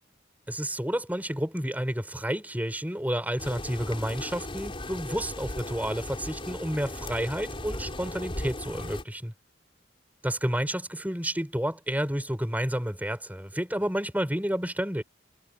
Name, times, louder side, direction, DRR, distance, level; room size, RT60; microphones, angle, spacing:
voice 1, 0.5-9.3 10.2-15.0, equal, 10° right, 5.8 m, -30 dB
sound 1, 3.4-9.0, left 1 dB, 30° left, 4.4 m, -37 dB
head